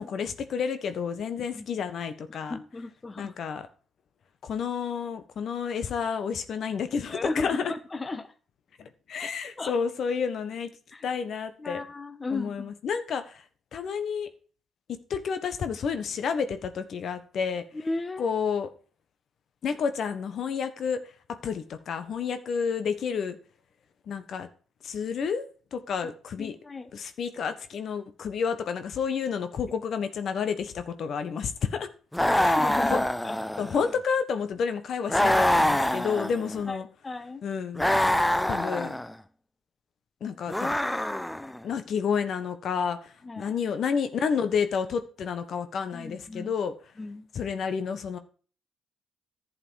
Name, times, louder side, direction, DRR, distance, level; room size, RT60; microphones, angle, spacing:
voice 1, 0.0-2.6 3.2-3.6 4.4-7.7 8.8-10.7 11.0-11.8 12.3-13.4 13.7-14.3 14.9-17.6 18.2-18.7 19.6-21.0 21.4-23.4 24.1-24.5 24.8-25.4 25.7-26.6 26.9-31.9 32.4-32.6 32.9-33.0 33.6-36.9 37.4-37.9 38.5-39.0 40.2-40.8 41.6-46.7 47.3-48.2, left 6 dB, 65° left, 10 dB, 1.4 m, -30 dB
voice 2, 2.3-3.3 7.1-8.3 9.6-9.8 10.9-11.0 11.6-12.7 17.7-18.3 26.4-26.9 32.2-33.4 36.7-36.8 37.0-37.4 38.2-38.4 43.2-43.5 45.9-46.5 47.0-47.3, left 3 dB, 30° left, 12 dB, 1.1 m, -35 dB
sound 1, 32.1-33.9 35.1-36.7 37.8-39.1 40.5-41.6, left 1 dB, 10° left, 0.8 m, -25 dB
11.0 x 8.0 x 4.8 m, 0.39 s
supercardioid pair, 55°, 0 cm